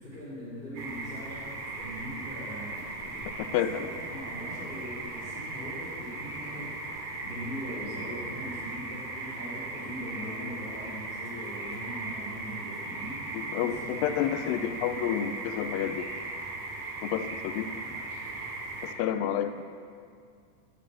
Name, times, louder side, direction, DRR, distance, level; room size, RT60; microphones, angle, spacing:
voice 1, 0.0-15.4 17.8-17.9, equal, 15° left, -8 dB, 2.9 m, -41 dB
sound 1, 0.8-18.9, right 3 dB, 65° right, 3.5 m, -38 dB
voice 2, 3.4-3.9 13.3-16.1 17.0-17.7 18.8-19.6, left 10 dB, 85° left, 11 dB, 2.0 m, -30 dB
16.5 x 8.9 x 7.6 m, 2.3 s
omnidirectional pair, 4.6 m